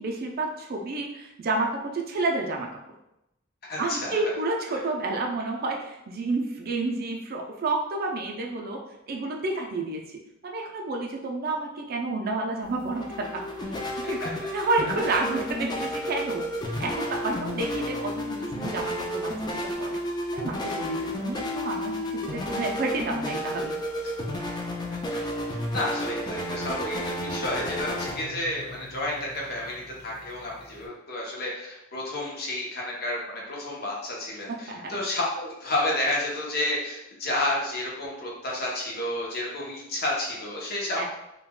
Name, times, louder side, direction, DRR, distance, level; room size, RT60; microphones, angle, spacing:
voice 1, 0.0-2.7 3.8-8.8 9.1-14.3 14.5-16.5 16.8-20.0 20.3-23.7 34.7-35.0 41.0-41.1, right 2 dB, 50° right, 1 dB, 0.4 m, -30 dB
voice 2, 3.7-4.4 14.0-14.5 24.9-25.0 25.5-41.0, left 1 dB, 55° left, -3 dB, 0.7 m, -31 dB
sound 1, 12.6-30.9, equal, 20° left, 0.4 m, -32 dB
3.6 x 2.2 x 2.2 m, 0.88 s
head